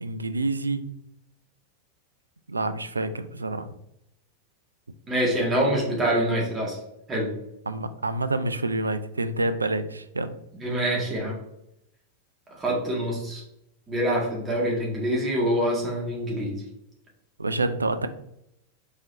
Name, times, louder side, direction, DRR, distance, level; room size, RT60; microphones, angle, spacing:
voice 1, 0.0-0.8 2.5-3.7 7.7-10.3 17.4-18.1, right 2 dB, 80° right, 11 dB, 0.3 m, -27 dB
voice 2, 5.1-6.8 7.1-7.3 10.6-11.4 12.6-13.4 13.9-16.6, right 1 dB, 20° right, -3 dB, 1.7 m, -25 dB
4.9 x 3.7 x 2.7 m, 0.80 s
figure-of-eight pair, 90°, 0 cm